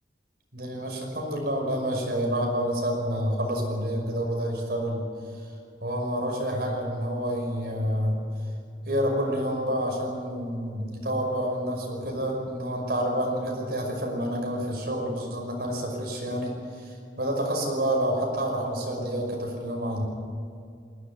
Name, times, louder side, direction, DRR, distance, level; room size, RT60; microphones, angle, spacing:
voice 1, 0.5-5.0 5.8-8.2 8.8-20.0, equal, 60° right, 1 dB, 5.7 m, -28 dB
22.0 x 16.5 x 9.5 m, 2.3 s
head